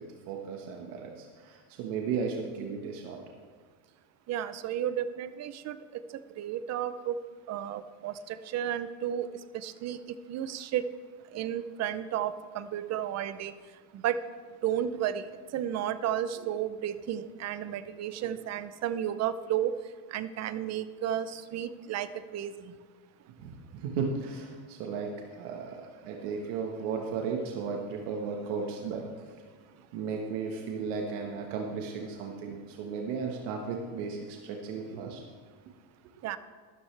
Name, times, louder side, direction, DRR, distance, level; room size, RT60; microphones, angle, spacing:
voice 1, 0.0-3.2 16.4-16.5 18.2-18.3 23.4-25.1 25.4-29.3 29.9-35.2, right 5 dB, 80° right, 1 dB, 1.4 m, -35 dB
voice 2, 4.3-5.8 6.4-7.2 7.5-9.3 9.6-10.0 10.3-10.8 11.3-13.5 14.0-14.2 14.6-15.2 15.5-19.7 20.1-22.1 22.3-22.5 36.2-36.4, right 10 dB, 35° right, 13 dB, 0.5 m, -32 dB
13.0 x 13.0 x 3.3 m, 1.5 s
cardioid pair, 135°, 45 cm